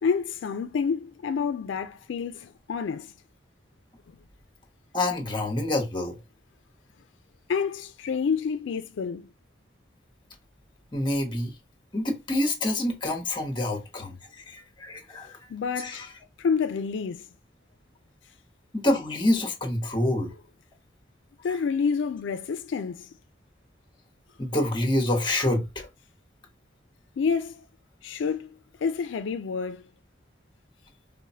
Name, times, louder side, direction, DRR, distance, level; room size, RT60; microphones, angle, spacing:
voice 1, 0.0-3.1 7.5-9.3 15.5-16.1 16.4-17.3 21.4-23.1 27.2-27.6 28.0-28.5 28.8-29.9, left 6 dB, 80° left, 0.4 m, -28 dB
voice 2, 4.9-6.2 10.9-11.5 11.9-14.2 14.5-15.4 15.8-16.1 18.7-20.3 24.4-25.9, left 1 dB, 25° left, 1.1 m, -27 dB
4.8 x 2.1 x 2.7 m
head